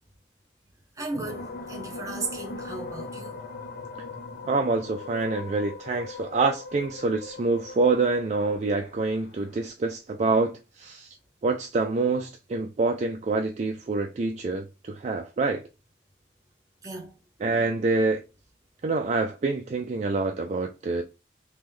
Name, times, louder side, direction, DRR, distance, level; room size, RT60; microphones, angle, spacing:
voice 1, 1.0-3.4 16.8-17.2, right 3 dB, 20° right, 0.9 m, -35 dB
sound 1, 1.2-9.7, left 3 dB, 55° left, 0.6 m, -40 dB
voice 2, 4.5-11.1 11.4-15.6 17.4-18.2 18.8-21.0, right 3 dB, 40° right, 0.3 m, -26 dB
3.1 x 3.0 x 3.7 m
head